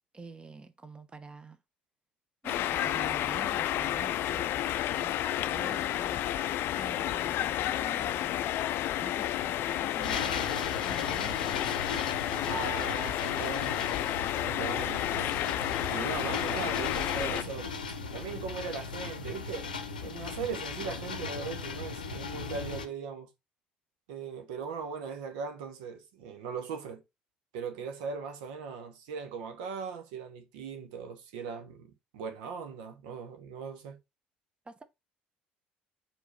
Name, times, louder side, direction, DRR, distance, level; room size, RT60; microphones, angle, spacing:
voice 1, 0.1-1.6 2.4-6.2 6.7-8.5 9.0-11.8 34.6-34.8, right 3 dB, 20° right, 1.0 m, -47 dB
sound 1, 2.4-17.4, left 12 dB, 55° left, 0.4 m, -31 dB
sound 2, 10.0-22.9, left 4 dB, 85° left, 0.7 m, -38 dB
voice 2, 12.5-13.9 14.4-15.4 15.9-19.7 20.0-23.3 24.1-27.0 27.5-34.0, right 6 dB, 70° right, 1.0 m, -39 dB
4.7 x 3.8 x 5.4 m
figure-of-eight pair, 55°, 4 cm